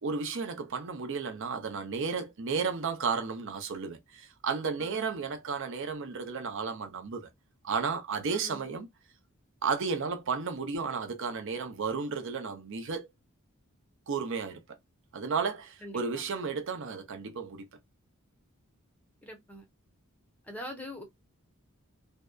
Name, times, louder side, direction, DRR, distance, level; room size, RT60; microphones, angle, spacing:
voice 1, 0.0-7.3 7.6-8.9 9.6-13.1 14.1-14.6 15.1-17.6, right 5 dB, 60° right, 0.5 m, -33 dB
voice 2, 4.8-5.2 8.3-8.6 15.8-16.2 19.2-19.7 20.4-21.0, equal, 5° left, 0.6 m, -43 dB
2.7 x 2.1 x 2.2 m
head